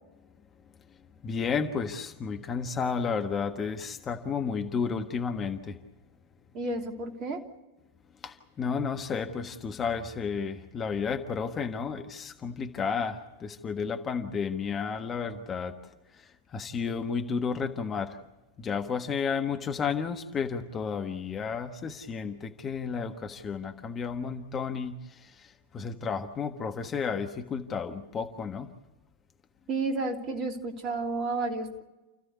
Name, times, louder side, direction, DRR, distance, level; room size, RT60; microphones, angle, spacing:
voice 1, 1.2-5.8 8.2-15.8 16.5-18.2 18.6-28.7, left 5 dB, 25° left, 6 dB, 1.4 m, -32 dB
voice 2, 6.5-7.4 29.7-31.8, right 3 dB, 35° right, 4 dB, 3.0 m, -31 dB
29.0 x 15.5 x 8.3 m, 1.1 s
figure-of-eight pair, 90°, 0 cm